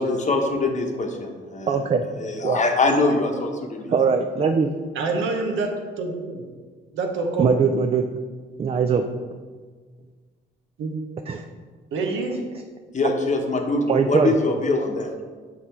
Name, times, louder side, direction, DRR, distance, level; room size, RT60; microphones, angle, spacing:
voice 1, 0.0-1.7 2.2-3.9 12.9-15.1, left 2 dB, 35° left, 3 dB, 0.9 m, -23 dB
voice 2, 1.7-2.0 2.4-2.6 3.9-4.7 7.4-8.1 8.6-9.1 11.3-11.5 13.9-14.4, right 6 dB, 30° right, 6 dB, 0.3 m, -21 dB
voice 3, 5.0-6.4 6.9-7.5 10.8-10.9 11.9-12.4, right 3 dB, 80° right, 3 dB, 0.9 m, -26 dB
6.3 x 3.7 x 4.3 m, 1.5 s
cardioid pair, 90°, 20 cm